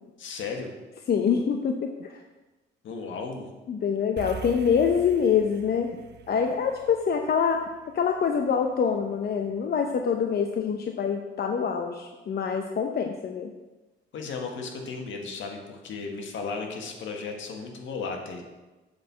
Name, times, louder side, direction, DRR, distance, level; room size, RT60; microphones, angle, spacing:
voice 1, 0.2-0.7 2.8-3.5 14.1-18.4, left 4 dB, 75° left, 2 dB, 1.8 m, -35 dB
voice 2, 1.1-2.2 3.7-5.9 6.3-7.6 7.9-13.5, left 6 dB, 50° left, 4 dB, 0.8 m, -25 dB
sound 1, 4.2-8.7, right 6 dB, 60° right, 0.7 m, -44 dB
7.4 x 5.6 x 7.5 m, 1.2 s
cardioid pair, 90°, 20 cm